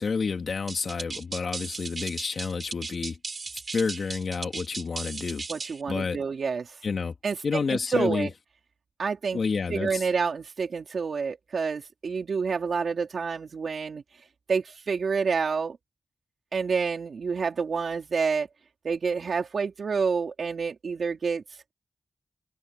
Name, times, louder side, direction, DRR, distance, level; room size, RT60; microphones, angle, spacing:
voice 1, 0.0-3.2 3.7-5.4 5.9-6.2 6.8-7.1 7.4-8.3 9.3-10.1, left 5 dB, 75° left, 2.9 m, -29 dB
sound 1, 0.7-5.8, right 4 dB, 50° right, 7.1 m, -36 dB
voice 2, 5.5-6.8 7.2-8.3 9.0-9.4 9.7-14.0 14.5-15.8 16.5-18.5 18.8-21.4, right 5 dB, 80° right, 3.9 m, -28 dB
wide cardioid pair, 95°, 0 cm